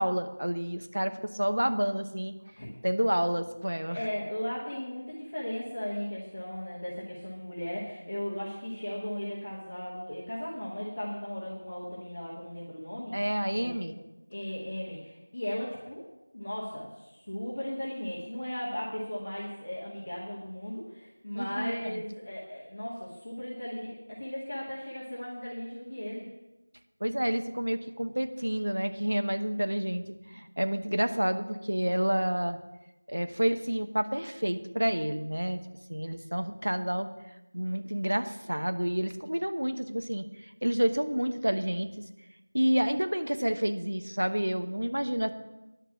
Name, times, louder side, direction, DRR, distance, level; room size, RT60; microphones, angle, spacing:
voice 1, 0.0-2.4 2.8-4.0 13.1-14.0 21.3-22.0 27.0-32.6 33.1-35.6 35.9-37.1 37.5-41.9 42.5-45.3, equal, 75° right, 9 dB, 1.0 m, -29 dB
voice 2, 3.9-13.2 13.5-13.8 14.3-16.1 16.3-26.3, left 1 dB, 30° left, -7 dB, 1.9 m, -36 dB
10.5 x 6.8 x 7.5 m, 1.0 s
figure-of-eight pair, 175°, 0 cm